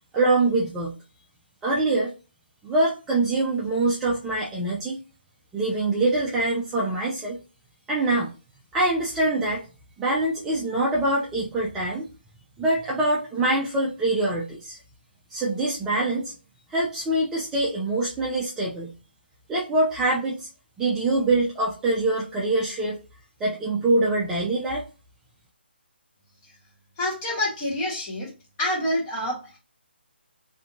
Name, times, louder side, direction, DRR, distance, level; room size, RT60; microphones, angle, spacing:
voice 1, 0.1-0.9 1.6-2.1 2.6-5.0 5.5-7.4 7.9-8.3 8.7-9.7 10.0-12.1 12.6-14.8 15.3-16.3 16.7-18.9 19.5-20.5 20.8-23.0 23.4-24.8, right 2 dB, 10° right, -5 dB, 0.3 m, -24 dB
voice 2, 27.0-28.3 28.6-29.6, left 1 dB, 20° left, -3 dB, 1.1 m, -27 dB
2.6 x 2.5 x 2.3 m, 0.33 s
hypercardioid pair, 155°, 6 cm